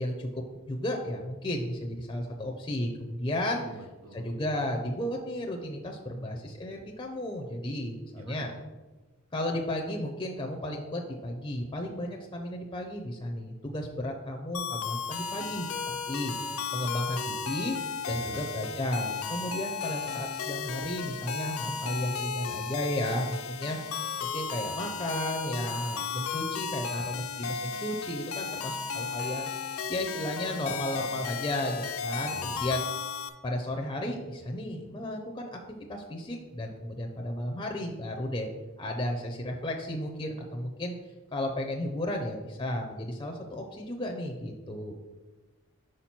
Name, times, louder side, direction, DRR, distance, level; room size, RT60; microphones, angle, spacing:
voice 1, 0.0-3.6 4.1-8.5 9.3-16.4 16.7-17.8 18.1-23.8 24.2-29.5 29.9-32.8 33.4-35.6 35.9-38.5 38.8-40.9 41.3-44.9, left 1 dB, 20° left, 1 dB, 0.5 m, -33 dB
voice 2, 3.6-4.3 8.1-8.6 18.1-18.5 32.3-32.7, right 1 dB, 80° right, 5 dB, 0.8 m, -46 dB
sound 1, 14.5-33.3, left 5 dB, 90° left, 0.5 m, -34 dB
4.8 x 4.3 x 5.8 m, 1.2 s
head